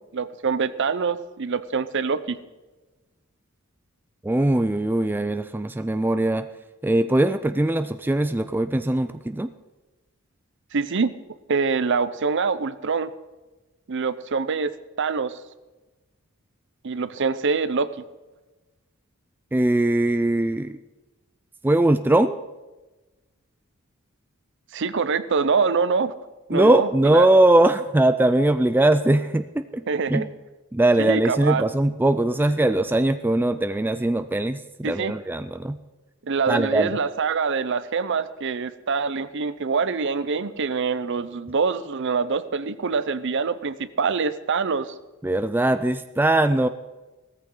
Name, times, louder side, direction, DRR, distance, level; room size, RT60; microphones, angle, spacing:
voice 1, 0.1-2.4 10.7-11.1 11.5-13.1 13.9-14.7 15.0-15.4 16.8-17.9 24.7-26.2 26.5-27.3 29.9-30.3 31.0-31.6 34.8-35.1 36.3-44.9, right 5 dB, 55° right, 14 dB, 0.6 m, -25 dB
voice 2, 4.2-6.5 6.8-9.5 19.5-20.8 21.6-22.4 26.5-29.8 30.1-30.3 30.7-35.8 36.5-37.0 45.2-46.7, right 1 dB, 10° right, 10 dB, 0.3 m, -21 dB
16.5 x 14.0 x 3.8 m, 1.1 s
head